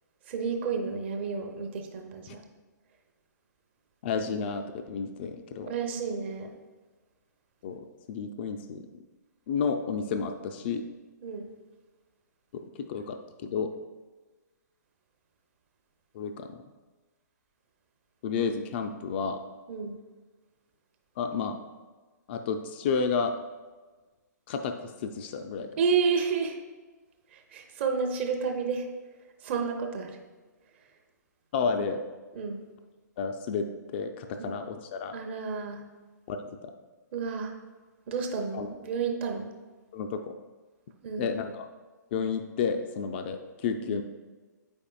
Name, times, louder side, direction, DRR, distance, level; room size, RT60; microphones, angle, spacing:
voice 1, 0.3-2.4 5.7-6.5 11.2-11.5 19.7-20.0 25.8-26.6 27.3-28.9 29.4-30.1 32.3-32.6 34.4-34.6 35.1-35.8 37.1-37.5 38.1-39.5 41.0-41.3 43.9-44.0, right 5 dB, 40° right, 4 dB, 0.7 m, -30 dB
voice 2, 4.0-5.7 7.6-8.8 9.5-10.8 12.5-13.7 16.1-16.6 18.2-19.4 21.2-21.6 22.3-23.3 24.5-25.7 31.5-32.0 33.2-35.2 36.3-36.7 38.5-38.7 39.9-40.2 41.2-41.7 42.1-44.0, left 5 dB, 35° left, 6 dB, 0.3 m, -31 dB
8.2 x 5.3 x 2.3 m, 1.3 s
figure-of-eight pair, 120°, 10 cm